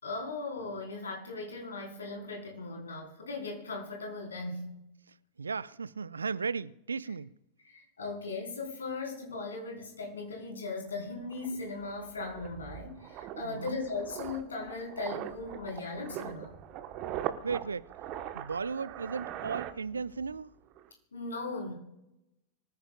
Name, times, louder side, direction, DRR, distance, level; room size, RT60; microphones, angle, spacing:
voice 1, 0.0-4.8 7.6-16.5 21.1-21.7, left 3 dB, 70° left, 4.3 m, -38 dB
voice 2, 5.1-7.3 13.4-13.8 17.4-17.9 18.3-20.5, right 5 dB, 75° right, 0.4 m, -36 dB
sound 1, 10.9-11.0 11.3-20.4 20.6-20.9, right 11 dB, 40° right, 1.1 m, -41 dB
24.5 x 14.5 x 2.3 m
figure-of-eight pair, 90°, 0 cm